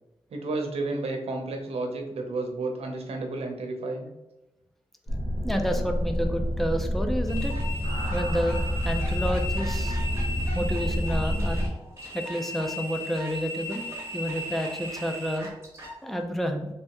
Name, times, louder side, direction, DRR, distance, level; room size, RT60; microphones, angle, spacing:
voice 1, 0.3-4.1, right 2 dB, 85° right, 3 dB, 0.7 m, -31 dB
sound 1, 5.1-11.7, equal, 50° left, 1.2 m, -28 dB
voice 2, 5.4-7.5 8.1-10.0 10.5-11.7 12.1-13.9 14.1-15.5 16.0-16.7, equal, ahead, 4 dB, 0.4 m, -30 dB
sound 2, 7.3-16.0, left 1 dB, 25° right, 1.2 m, -37 dB
3.4 x 3.1 x 2.9 m, 0.99 s
wide cardioid pair, 140°, 10 cm